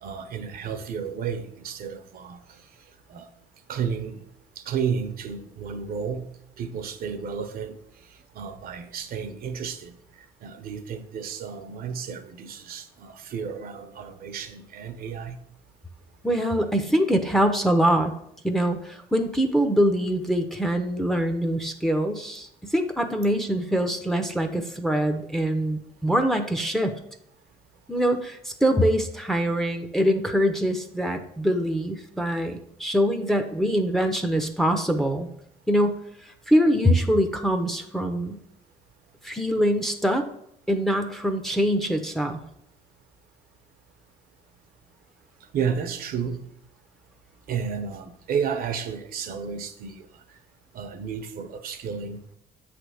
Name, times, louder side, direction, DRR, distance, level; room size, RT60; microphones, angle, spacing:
voice 1, 0.0-2.4 3.1-3.3 3.7-4.2 4.6-6.3 6.6-7.8 8.3-10.0 10.4-15.4 45.5-46.4 47.5-50.1 50.7-52.2, right 6 dB, 60° right, 0.8 m, -32 dB
voice 2, 16.2-18.1 18.4-26.9 27.9-35.3 35.7-36.0 36.3-38.4 39.2-40.2 40.7-42.4, equal, ahead, 0.7 m, -24 dB
7.6 x 3.4 x 6.3 m
cardioid pair, 110°, 17 cm